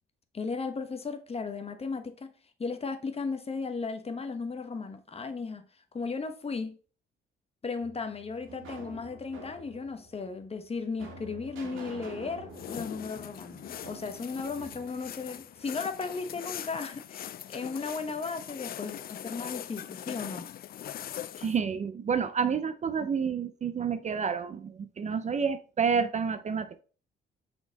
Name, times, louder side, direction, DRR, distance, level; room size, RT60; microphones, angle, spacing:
voice 1, 0.3-2.3 2.6-5.6 5.9-6.8 7.6-20.5, left 4 dB, 30° left, 1.0 m, -36 dB
sound 1, 7.8-15.9, right 2 dB, 90° right, 2.0 m, -48 dB
sound 2, 12.5-21.6, left 11 dB, 50° left, 0.4 m, -41 dB
voice 2, 21.4-26.8, right 6 dB, 35° right, 0.5 m, -29 dB
5.7 x 4.3 x 4.0 m
cardioid pair, 90°, 20 cm